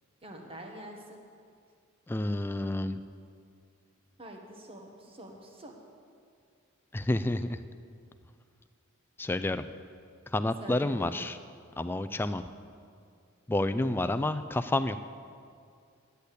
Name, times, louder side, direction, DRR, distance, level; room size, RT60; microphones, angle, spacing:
voice 1, 0.2-1.2 4.2-5.8 10.6-11.2, right 1 dB, 30° right, 2 dB, 1.4 m, -45 dB
voice 2, 2.1-3.0 6.9-7.6 9.2-9.6 10.3-11.4 11.8-12.4 13.5-15.0, left 2 dB, 10° left, 10 dB, 0.3 m, -29 dB
10.5 x 8.0 x 8.3 m, 2.3 s
head